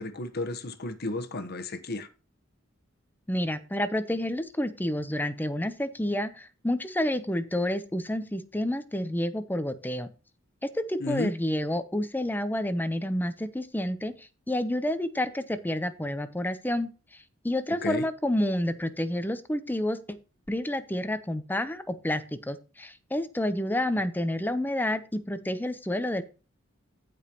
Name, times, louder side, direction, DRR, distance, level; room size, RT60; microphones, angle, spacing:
voice 1, 0.0-2.1 11.0-11.3 17.8-18.1, left 2 dB, 50° left, 1.2 m, -33 dB
voice 2, 3.3-10.1 10.6-16.9 17.4-20.2 20.5-26.2, left 1 dB, 10° left, 0.8 m, -29 dB
15.5 x 5.2 x 3.0 m
head